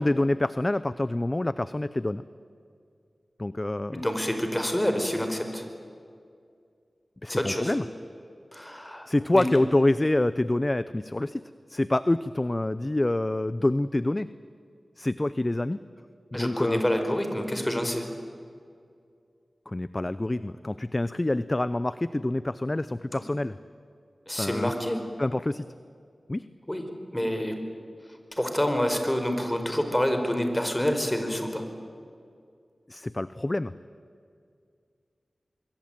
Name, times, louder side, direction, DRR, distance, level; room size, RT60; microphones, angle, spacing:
voice 1, 0.0-2.2 3.4-4.0 7.2-7.8 9.1-11.4 11.7-14.3 15.0-15.8 16.3-16.8 19.7-23.6 24.4-24.7 25.2-25.7 26.3-26.4 32.9-33.7, left 1 dB, 30° left, 15 dB, 0.7 m, -26 dB
voice 2, 3.9-5.6 7.3-7.7 8.5-9.1 9.3-9.6 16.3-18.1 23.1-23.2 24.3-25.1 26.7-26.8 27.1-27.6 28.4-31.7, equal, 15° left, 6 dB, 4.7 m, -27 dB
25.0 x 22.5 x 9.1 m, 2.3 s
wide cardioid pair, 50°, 0 cm